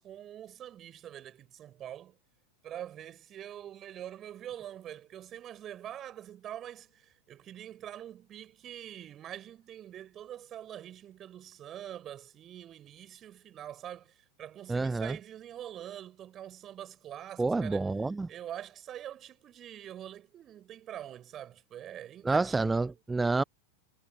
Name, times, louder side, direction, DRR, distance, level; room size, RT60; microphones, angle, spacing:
voice 1, 0.0-2.2 2.6-17.9 18.3-22.9, right 11 dB, 30° right, 6.1 m, -45 dB
voice 2, 14.7-15.2 17.4-18.3 22.2-23.4, right 3 dB, 10° right, 0.4 m, -28 dB
figure-of-eight pair, 90°, 0 cm